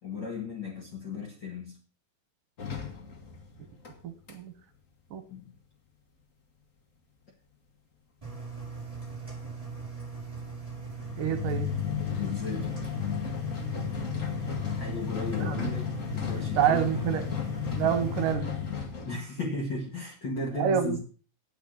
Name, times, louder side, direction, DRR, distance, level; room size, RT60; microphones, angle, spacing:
voice 1, 0.0-1.8 5.3-5.5 12.1-12.7 14.7-17.1 19.0-21.0, left 3 dB, 40° left, 1.9 m, -36 dB
sound 1, 2.6-4.0 4.3-4.4 10.8-19.2, left 9 dB, 70° left, 0.7 m, -34 dB
voice 2, 4.0-4.5 5.1-5.2 11.2-11.7 15.4-15.7 16.6-17.2 17.8-18.5 20.6-21.0, right 9 dB, 70° right, 2.6 m, -27 dB
Engine, 8.2-18.3, right 5 dB, 10° right, 6.9 m, -39 dB
9.0 x 8.3 x 6.3 m
omnidirectional pair, 4.2 m